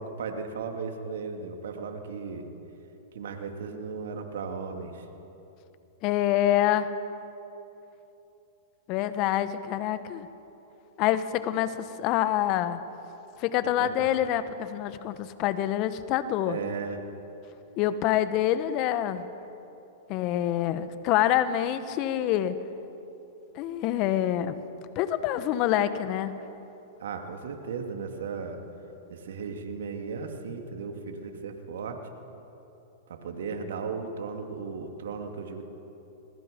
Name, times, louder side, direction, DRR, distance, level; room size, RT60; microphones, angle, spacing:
voice 1, 0.0-2.5 3.1-5.0 13.8-13.9 16.4-17.0 27.0-28.6 29.1-32.0 33.1-35.6, right 5 dB, 75° right, 4 dB, 2.6 m, -36 dB
voice 2, 6.0-6.9 8.9-10.3 11.0-12.8 13.4-16.6 17.8-19.3 20.1-22.6 23.5-24.6 24.9-26.3, left 12 dB, 45° left, 12 dB, 1.3 m, -26 dB
27.0 x 21.0 x 5.4 m, 2.9 s
hypercardioid pair, 115°, 0 cm